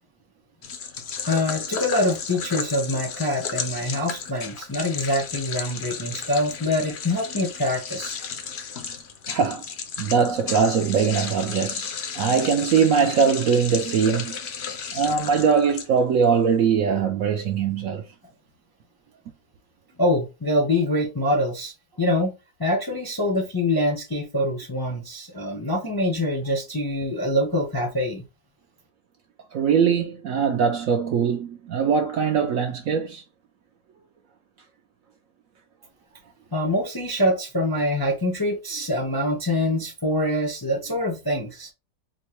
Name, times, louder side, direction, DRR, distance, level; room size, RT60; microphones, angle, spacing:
sound 1, 0.6-16.2, left 6 dB, 60° left, 0.7 m, -33 dB
voice 1, 1.2-8.2 20.0-22.3 22.6-28.2 36.5-41.7, left 1 dB, 20° left, 0.6 m, -25 dB
voice 2, 9.3-9.6 10.0-14.4 14.9-18.0 29.5-33.2, right 6 dB, 70° right, 0.8 m, -21 dB
4.5 x 2.1 x 3.0 m
omnidirectional pair, 1.8 m